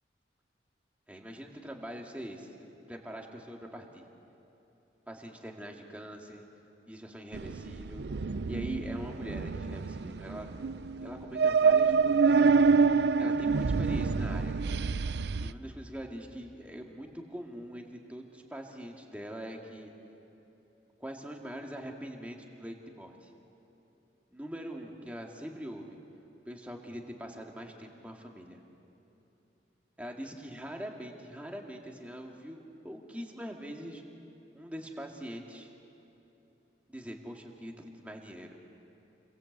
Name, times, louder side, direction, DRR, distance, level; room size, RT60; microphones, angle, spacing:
voice 1, 1.1-4.0 5.1-6.4 6.9-10.5 11.0-12.6 13.2-14.6 15.4-19.9 21.0-23.3 24.3-26.0 26.5-28.6 30.0-34.0 34.5-35.7 36.9-38.6, equal, 10° right, 1 dB, 2.2 m, -43 dB
sound 1, 7.3-15.5, right 5 dB, 70° right, 0.5 m, -27 dB
29.0 x 22.5 x 8.2 m, 3.0 s
head